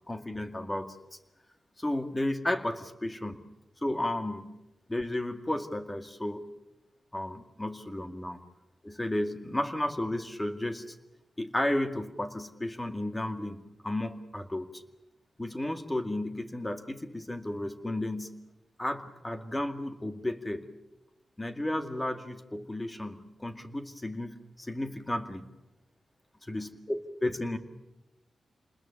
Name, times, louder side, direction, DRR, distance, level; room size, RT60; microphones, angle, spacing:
voice 1, 0.1-1.0 1.8-3.4 3.8-4.5 4.9-6.5 7.1-8.4 8.8-10.9 11.4-14.7 15.4-18.4 18.8-20.7 21.4-25.5 26.4-27.6, left 1 dB, 15° left, 7 dB, 2.1 m, -33 dB
29.0 x 20.5 x 7.1 m, 0.97 s
wide cardioid pair, 105°, 0 cm